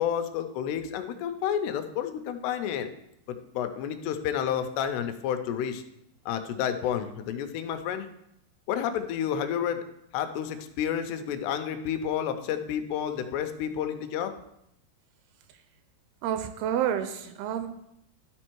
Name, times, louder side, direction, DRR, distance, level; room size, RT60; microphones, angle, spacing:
voice 1, 0.0-2.9 3.3-5.8 6.3-8.1 8.7-9.8 10.1-14.3, left 9 dB, 90° left, 8 dB, 2.7 m, -30 dB
voice 2, 16.2-17.7, right 9 dB, 80° right, 8 dB, 2.4 m, -29 dB
12.5 x 4.3 x 4.6 m, 0.79 s
omnidirectional pair, 4.7 m